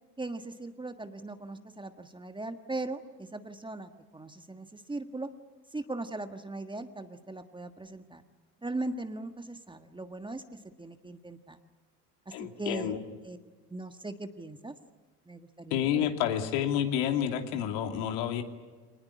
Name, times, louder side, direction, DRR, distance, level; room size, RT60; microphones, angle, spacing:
voice 1, 0.2-5.3 5.7-8.2 8.6-11.6 12.2-12.9 13.2-13.4 13.7-14.8 15.3-16.1, right 2 dB, 10° right, 8 dB, 1.5 m, -39 dB
voice 2, 12.3-13.0 15.7-18.4, left 9 dB, 60° left, 5 dB, 2.9 m, -29 dB
25.5 x 20.0 x 9.9 m, 1.4 s
hypercardioid pair, 70°, 47 cm